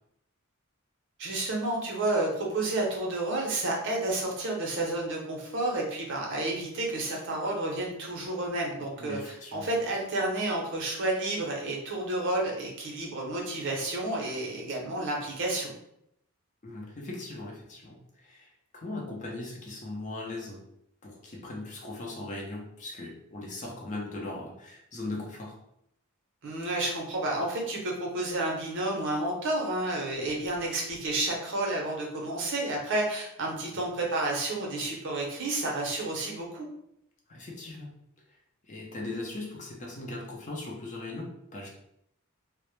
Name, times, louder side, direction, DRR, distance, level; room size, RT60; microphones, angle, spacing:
voice 1, 1.2-15.7 26.4-36.7, right 2 dB, 60° right, -1 dB, 0.6 m, -30 dB
voice 2, 9.0-9.7 16.6-20.6 21.0-25.6 33.5-33.6 37.3-37.9 38.7-41.7, left 2 dB, 35° left, -1 dB, 0.5 m, -39 dB
2.1 x 2.0 x 3.0 m, 0.76 s
head